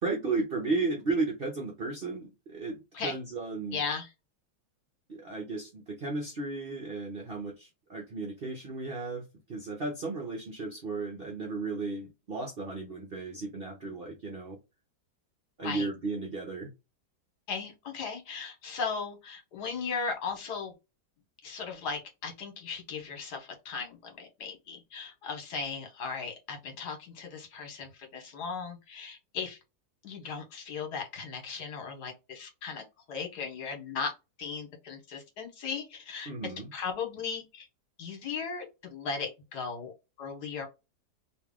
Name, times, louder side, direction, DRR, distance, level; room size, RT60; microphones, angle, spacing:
voice 1, 0.0-3.8 5.1-14.6 15.6-16.7 36.3-36.7, right 3 dB, 55° right, 0.6 m, -34 dB
voice 2, 3.7-4.1 15.6-15.9 17.5-20.7 21.4-29.6 30.0-32.8 33.1-34.1 34.4-36.3 36.7-37.7 38.0-39.9 40.2-40.7, left 5 dB, 75° left, 1.6 m, -37 dB
3.1 x 2.6 x 3.6 m
omnidirectional pair, 1.8 m